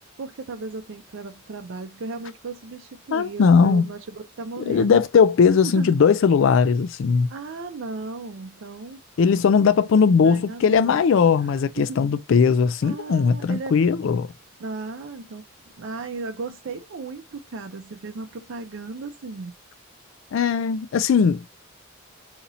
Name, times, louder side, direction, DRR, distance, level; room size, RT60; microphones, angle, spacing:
voice 1, 0.2-5.0 5.6-5.9 7.3-9.0 10.2-11.3 11.8-12.0 12.8-13.8 14.6-15.4 15.8-19.5, right 3 dB, 65° right, 0.5 m, -36 dB
voice 2, 3.1-3.8 4.7-7.3 9.2-14.3 20.3-21.5, left 6 dB, 65° left, 0.3 m, -19 dB
4.0 x 2.9 x 4.0 m
head